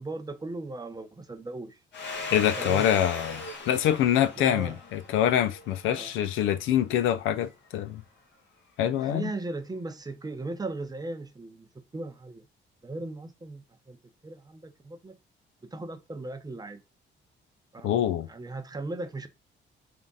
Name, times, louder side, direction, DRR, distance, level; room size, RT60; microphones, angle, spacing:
voice 1, 0.0-1.8 2.6-3.2 4.4-4.8 5.9-6.1 8.9-12.4 12.8-14.0 14.2-15.2 15.7-16.8 17.7-19.3, right 2 dB, 20° right, 0.7 m, -38 dB
Domestic sounds home sounds, 1.9-6.3, left 3 dB, 60° left, 1.3 m, -38 dB
voice 2, 2.3-8.0 8.8-9.3 17.8-18.3, left 10 dB, 85° left, 0.5 m, -25 dB
3.6 x 2.4 x 3.9 m
cardioid pair, 90°, 20 cm